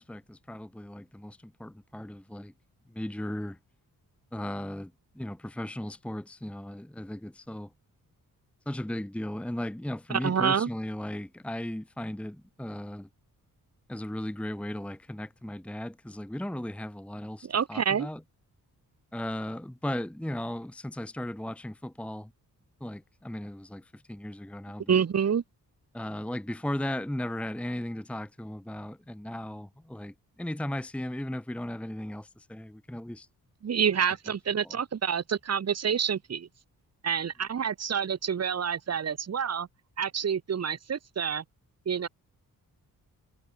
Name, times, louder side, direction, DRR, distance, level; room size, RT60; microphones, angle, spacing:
voice 1, 0.0-2.5 2.9-3.6 4.3-7.7 8.7-13.1 13.9-18.2 19.1-22.3 22.8-24.9 25.9-33.3 34.6-34.8, left 1 dB, 5° left, 1.1 m, -36 dB
voice 2, 10.1-10.7 17.4-18.1 24.9-25.4 33.6-36.5 37.0-39.7 40.0-41.4 41.9-42.1, right 7 dB, 45° right, 1.2 m, -28 dB
wide cardioid pair, 115°, 35 cm